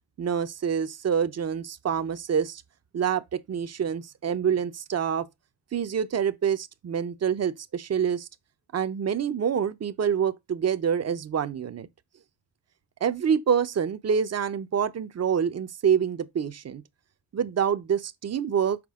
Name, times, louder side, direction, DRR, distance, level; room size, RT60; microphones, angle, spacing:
voice 1, 0.2-2.6 2.9-5.3 5.7-8.3 8.7-11.9 13.0-16.8 17.3-18.8, right 7 dB, 40° right, 0.8 m, -26 dB
6.1 x 4.4 x 3.6 m
cardioid pair, 75°, 39 cm